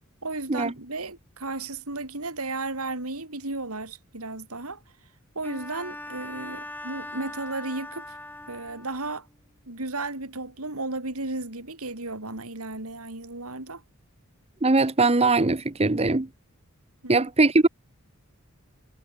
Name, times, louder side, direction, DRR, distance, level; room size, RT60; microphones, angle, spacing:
voice 1, 0.2-4.8 5.3-8.2 8.5-9.3 9.7-13.8 17.0-17.3, right 2 dB, 90° right, 4.8 m, -34 dB
Bowed string instrument, 5.4-9.1, left 1 dB, 10° left, 3.9 m, -40 dB
voice 2, 14.6-16.3 17.1-17.7, right 3 dB, 30° right, 0.9 m, -21 dB
head